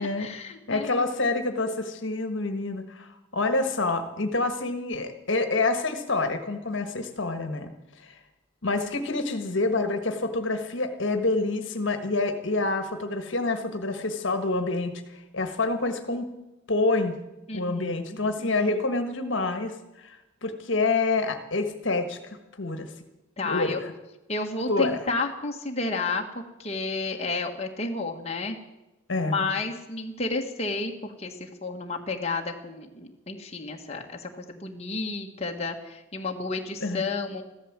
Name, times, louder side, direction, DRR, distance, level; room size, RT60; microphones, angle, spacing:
voice 1, 0.0-1.2 17.5-18.8 23.4-23.8 24.3-28.6 29.2-37.4, left 3 dB, 30° left, 1 dB, 1.4 m, -32 dB
voice 2, 0.7-7.7 8.0-8.2 8.6-16.3 16.7-17.2 17.5-22.9 23.4-23.9 24.7-25.0 29.1-29.4 36.8-37.0, left 3 dB, 60° left, 7 dB, 1.4 m, -27 dB
14.5 x 12.5 x 7.4 m, 0.97 s
head